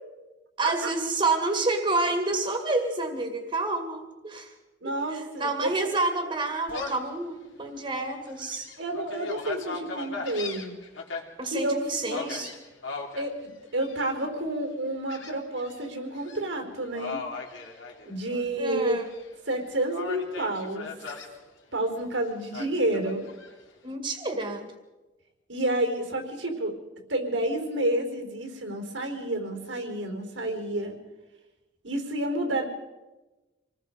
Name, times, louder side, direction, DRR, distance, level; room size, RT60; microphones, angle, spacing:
voice 1, 0.6-4.5 4.8-8.7 11.4-12.5 18.6-19.1 23.8-24.7, right 2 dB, 30° right, 4 dB, 2.2 m, -29 dB
voice 2, 4.8-5.5 8.8-10.7 11.4-12.5 13.2-13.4 13.7-17.2 18.0-19.0 19.5-20.9 21.7-23.3 25.5-26.8 27.1-31.0 31.8-32.6, right 1 dB, 80° right, 4 dB, 4.2 m, -29 dB
Gull seagull, 6.7-7.1 7.6-7.7 8.3-11.2 12.1-13.3 13.8-14.2 15.1-15.8 16.1-16.4 16.9-18.5 18.8-19.6 19.9-21.3 22.5-23.5, left 4 dB, 85° left, 3.3 m, -38 dB
26.5 x 20.0 x 5.2 m, 1.1 s
head